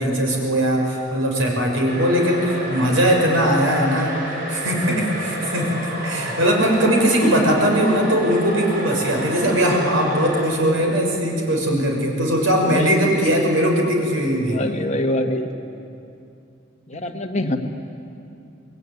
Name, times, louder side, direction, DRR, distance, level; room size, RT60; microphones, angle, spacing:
voice 1, 0.0-4.1 4.5-5.7 6.0-14.6 16.9-17.0, equal, 90° right, 0 dB, 6.3 m, -20 dB
sound 1, 1.8-10.4, equal, 45° right, 7.3 m, -30 dB
voice 2, 7.2-7.5 12.6-13.1 14.4-15.5 16.9-17.6, left 1 dB, 35° left, 4 dB, 1.8 m, -25 dB
27.5 x 21.0 x 9.9 m, 2.5 s
head